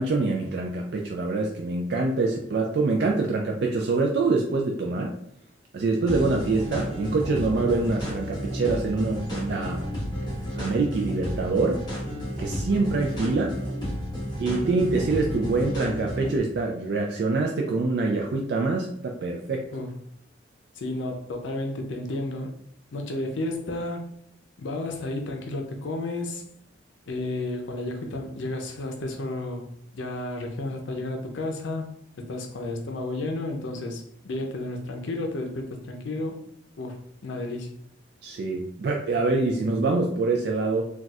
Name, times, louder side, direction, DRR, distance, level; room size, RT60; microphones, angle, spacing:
voice 1, 0.0-5.1 5.7-9.8 10.6-11.8 12.4-13.6 14.4-19.7 38.2-41.0, right 3 dB, 60° right, 1 dB, 0.3 m, -25 dB
sound 1, 6.1-16.4, equal, 25° left, 0.9 m, -32 dB
voice 2, 20.8-22.6 22.9-24.1 24.6-26.4 27.1-29.6 29.9-31.9 32.3-36.4 36.8-37.7, left 2 dB, 85° left, 3 dB, 0.5 m, -32 dB
4.0 x 2.3 x 2.3 m, 0.70 s
head